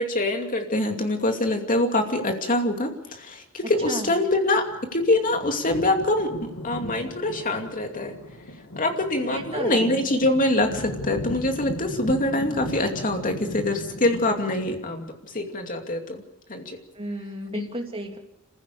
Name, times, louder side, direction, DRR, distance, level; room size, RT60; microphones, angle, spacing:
voice 1, 0.0-4.6 4.9-8.1 8.8-16.2 16.5-16.8 17.5-17.7, left 1 dB, 40° left, 4 dB, 2.6 m, -24 dB
voice 2, 3.6-4.1 9.2-10.0 16.9-18.2, right 1 dB, 25° right, 3 dB, 2.6 m, -33 dB
sound 1, 4.7-15.1, left 1 dB, 85° left, 2.6 m, -37 dB
27.0 x 15.5 x 6.9 m, 0.82 s
head